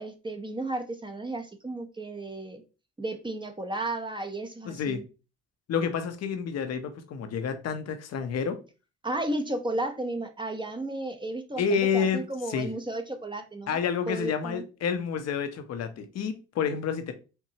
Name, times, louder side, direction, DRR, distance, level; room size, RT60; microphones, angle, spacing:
voice 1, 0.0-2.6 3.0-5.0 9.0-13.8 14.1-14.6, right 2 dB, 15° right, 0.9 m, -33 dB
voice 2, 4.6-5.0 5.7-8.6 11.6-12.2 12.5-12.7 13.7-17.1, left 6 dB, 60° left, 0.9 m, -29 dB
4.5 x 2.7 x 2.8 m
supercardioid pair, 60°, 30 cm